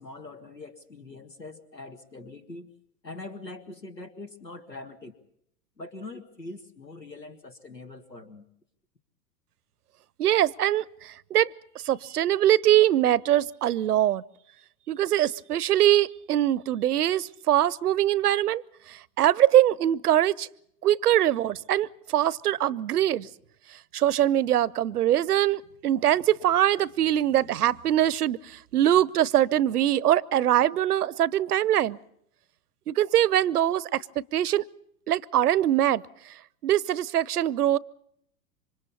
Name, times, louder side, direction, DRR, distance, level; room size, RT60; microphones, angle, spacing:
voice 1, 0.0-2.7 3.0-5.1 5.8-8.4, left 2 dB, 90° left, 10 dB, 1.9 m, -43 dB
voice 2, 10.2-11.5 11.8-14.2 14.9-18.6 18.9-20.5 20.8-23.3 23.9-32.0 32.9-34.6 35.1-36.0 36.6-37.8, right 12 dB, 65° right, 24 dB, 0.7 m, -23 dB
27.5 x 25.0 x 4.2 m, 0.73 s
figure-of-eight pair, 95°, 49 cm